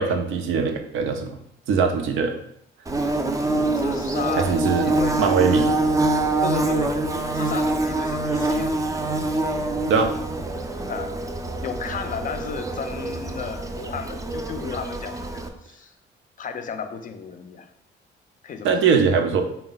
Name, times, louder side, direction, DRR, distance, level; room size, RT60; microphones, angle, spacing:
voice 1, 0.0-1.4 1.7-2.4 4.4-5.7 9.9-10.1 18.6-19.4, right 5 dB, 80° right, 4 dB, 0.6 m, -21 dB
Bird / Buzz, 2.9-15.5, right 2 dB, 15° right, 0.4 m, -25 dB
voice 2, 3.7-5.2 6.4-7.0 7.3-8.8 10.9-11.1 11.6-15.9 16.4-17.7 18.4-18.8, left 6 dB, 45° left, 8 dB, 0.4 m, -34 dB
3.6 x 2.2 x 3.9 m, 0.72 s
cardioid pair, 90°, 20 cm